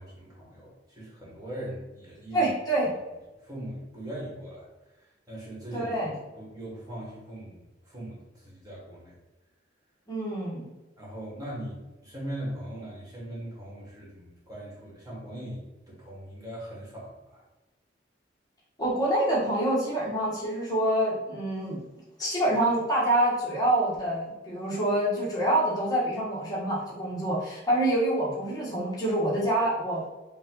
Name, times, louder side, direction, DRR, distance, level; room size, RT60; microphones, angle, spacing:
voice 1, 0.0-2.5 3.4-4.7 4.9-5.9 6.3-9.1 11.0-17.4, right 1 dB, 20° right, -5 dB, 1.5 m, -40 dB
voice 2, 2.3-2.9 5.7-6.1 10.1-10.7 18.8-21.8 22.2-30.1, right 1 dB, 20° left, -6 dB, 1.2 m, -26 dB
5.3 x 2.5 x 3.8 m, 1.1 s
head